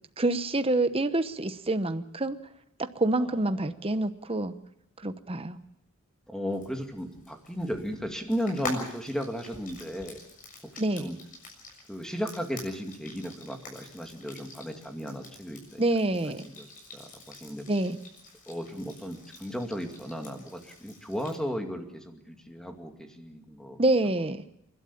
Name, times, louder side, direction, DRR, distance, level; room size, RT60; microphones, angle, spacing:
voice 1, 0.2-2.4 2.8-4.5 5.0-5.6 10.8-11.1 15.8-16.4 17.7-18.0 23.8-24.4, right 2 dB, 25° right, 11 dB, 1.0 m, -27 dB
voice 2, 6.3-10.2 10.6-11.2 11.9-15.8 16.4-16.7 16.9-17.7 18.5-23.8, equal, 5° left, 4 dB, 2.3 m, -35 dB
Frying (food), 6.5-21.4, left 2 dB, 40° left, 7.0 m, -46 dB
29.5 x 12.5 x 8.8 m, 0.77 s
head